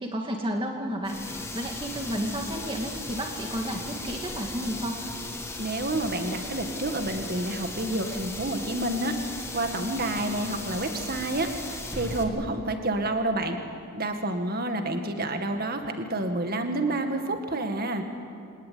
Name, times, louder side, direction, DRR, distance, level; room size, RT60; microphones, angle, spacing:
voice 1, 0.0-5.0, equal, 25° right, 1 dB, 2.1 m, -32 dB
sound 1, 1.0-12.2, left 2 dB, 10° left, 2.0 m, -37 dB
voice 2, 5.6-9.1 9.5-13.6 13.9-18.0, right 2 dB, 45° right, 6 dB, 2.0 m, -29 dB
23.0 x 19.5 x 9.5 m, 2.8 s
head